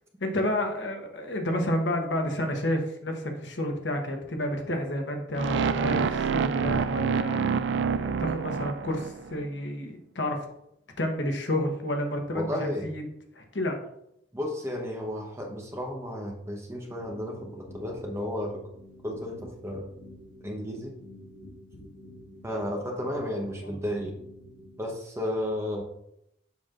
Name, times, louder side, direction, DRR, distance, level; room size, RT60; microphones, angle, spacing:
voice 1, 0.2-7.6 7.9-10.4 11.0-13.0 13.3-13.8 23.6-23.7, left 1 dB, 75° left, 3 dB, 1.1 m, -30 dB
sound 1, 5.4-9.5, right 6 dB, 70° right, 0.3 m, -27 dB
voice 2, 12.3-12.9 14.3-18.6 19.0-19.9 20.4-21.0 22.4-24.1 24.8-25.8, left 1 dB, 15° right, 0 dB, 1.0 m, -33 dB
sound 2, 17.0-24.9, left 1 dB, 60° left, 1.2 m, -48 dB
7.2 x 5.9 x 2.5 m, 0.78 s
head